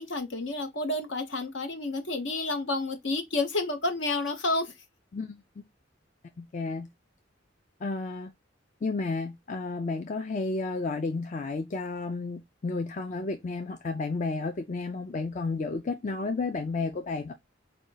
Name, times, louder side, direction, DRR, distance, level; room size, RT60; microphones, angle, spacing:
voice 1, 0.0-4.7, left 2 dB, 70° left, 1.0 m, -30 dB
voice 2, 6.4-6.9 7.8-8.3 8.8-17.3, left 3 dB, 40° left, 0.4 m, -32 dB
5.0 x 2.3 x 3.9 m
head